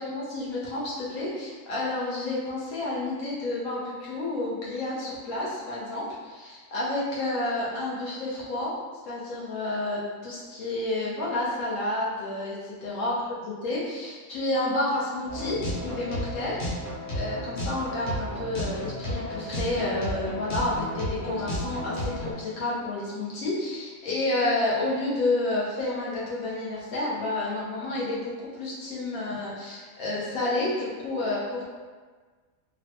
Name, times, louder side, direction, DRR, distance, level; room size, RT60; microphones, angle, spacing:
voice 1, 0.0-8.7 9.0-13.1 13.6-16.9 17.1-28.3 28.6-31.6, left 2 dB, 80° left, -6 dB, 1.3 m, -30 dB
sound 1, 15.3-22.3, left 1 dB, 45° left, 0.7 m, -32 dB
3.6 x 2.1 x 2.8 m, 1.4 s
omnidirectional pair, 1.5 m